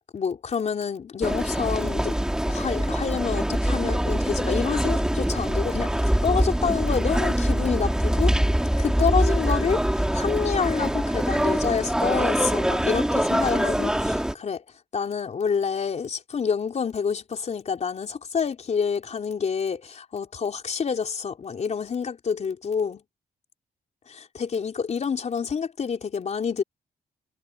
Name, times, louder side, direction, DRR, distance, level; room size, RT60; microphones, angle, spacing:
voice 1, 0.1-2.2 2.5-8.3 8.8-14.6 14.9-23.0 24.1-26.6, left 6 dB, 45° left, 4.2 m, -28 dB
sound 1, 1.2-14.3, right 1 dB, 5° right, 2.6 m, -24 dB
cardioid pair, 105°, 16 cm